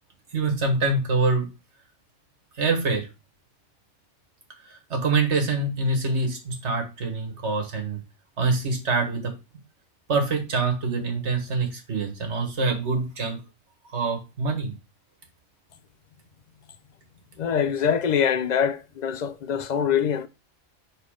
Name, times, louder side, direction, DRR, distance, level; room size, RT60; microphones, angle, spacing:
voice 1, 0.3-1.5 2.6-3.1 4.6-8.0 8.4-9.3 10.1-13.4 13.9-14.7, right 3 dB, 65° right, 1.9 m, -25 dB
voice 2, 17.4-20.3, left 8 dB, 50° left, 0.6 m, -24 dB
5.7 x 4.0 x 4.9 m
omnidirectional pair, 1.3 m